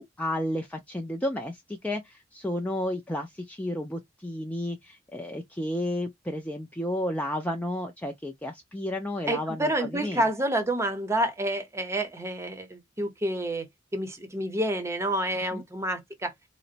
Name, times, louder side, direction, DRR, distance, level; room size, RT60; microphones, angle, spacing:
voice 1, 0.0-10.2 15.5-15.6, left 1 dB, 10° left, 0.4 m, -32 dB
voice 2, 9.3-16.3, right 1 dB, 15° right, 0.7 m, -29 dB
3.9 x 2.1 x 2.5 m
head